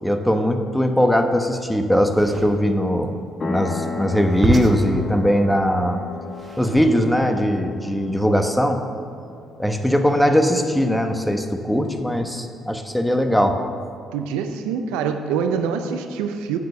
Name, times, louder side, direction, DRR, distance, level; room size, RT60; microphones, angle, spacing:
voice 1, 0.0-3.2 3.4-6.0 6.6-8.8 9.6-13.6, equal, 5° left, 6 dB, 1.1 m, -20 dB
sound 1, 2.1-7.2, right 2 dB, 35° right, 1.0 m, -28 dB
sound 2, 3.4-11.7, left 4 dB, 35° left, 1.0 m, -36 dB
voice 2, 14.1-16.6, right 6 dB, 75° right, 7 dB, 0.5 m, -25 dB
7.9 x 7.0 x 6.7 m, 2.3 s
hypercardioid pair, 45°, 0 cm